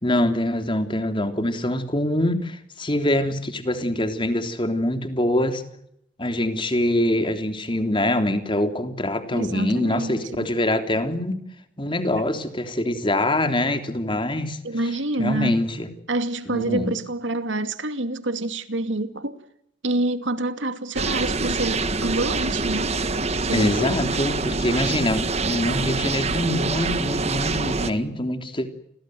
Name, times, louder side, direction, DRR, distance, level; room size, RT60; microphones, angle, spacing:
voice 1, 0.0-5.6 6.2-11.4 11.8-14.6 15.2-15.9 16.5-16.9 23.5-28.7, left 1 dB, 25° left, 3.3 m, -24 dB
voice 2, 9.3-10.5 14.6-15.6 16.1-19.4 19.8-23.0 23.4-23.9, right 2 dB, 85° right, 2.6 m, -27 dB
sound 1, 20.9-27.9, right 3 dB, 35° right, 1.8 m, -25 dB
29.5 x 23.0 x 7.9 m
head